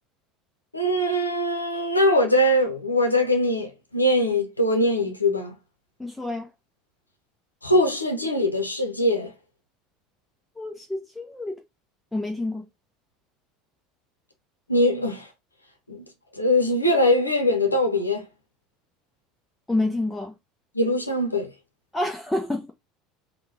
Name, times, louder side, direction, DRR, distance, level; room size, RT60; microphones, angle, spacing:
voice 1, 0.7-5.5 7.6-9.3 14.7-15.3 15.9-16.1 16.4-18.3 20.7-21.5, left 1 dB, 90° left, 0.7 m, -22 dB
voice 2, 6.0-6.5 10.6-11.6 12.1-12.7 19.7-20.3 21.9-22.7, left 2 dB, 5° left, 0.6 m, -28 dB
3.7 x 2.2 x 2.7 m
figure-of-eight pair, 70°, 0 cm